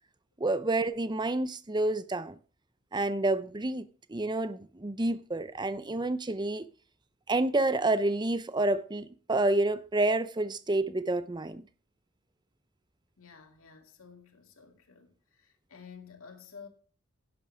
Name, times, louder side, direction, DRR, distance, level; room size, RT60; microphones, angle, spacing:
voice 1, 0.4-2.4 2.9-6.7 7.3-11.6, right 2 dB, 20° right, 0.6 m, -29 dB
voice 2, 13.2-16.7, left 6 dB, 80° left, 2.3 m, -51 dB
11.0 x 11.0 x 3.5 m
head